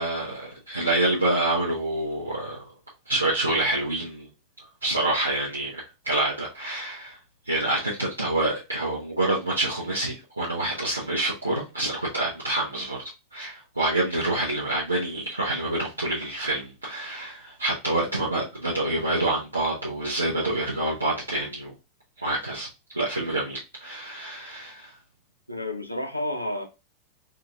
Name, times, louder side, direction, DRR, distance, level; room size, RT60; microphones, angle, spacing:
voice 1, 0.0-2.6 3.1-4.3 4.8-7.2 7.4-13.0 13.3-21.7 22.2-22.7 22.9-25.0, right 2 dB, 80° right, 0.7 m, -27 dB
voice 2, 25.5-26.6, left 1 dB, 90° left, 0.6 m, -31 dB
3.7 x 2.7 x 2.2 m
figure-of-eight pair, 90°, 0 cm